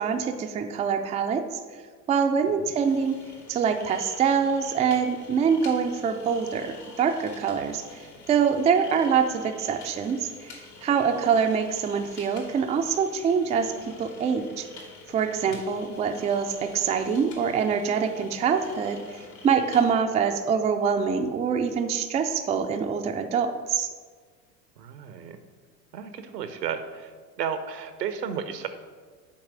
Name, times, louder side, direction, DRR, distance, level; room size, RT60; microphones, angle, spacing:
voice 1, 0.0-1.6 2.1-3.2 3.5-13.7 14.0-14.7 15.1-23.9, right 6 dB, 15° right, 6 dB, 0.4 m, -25 dB
sound 1, 2.8-19.9, left 3 dB, 75° left, 2.6 m, -47 dB
voice 2, 24.8-25.4 25.9-27.1 27.4-28.7, right 7 dB, 80° right, 9 dB, 1.0 m, -33 dB
7.4 x 4.7 x 6.1 m, 1.5 s
hypercardioid pair, 85°, 49 cm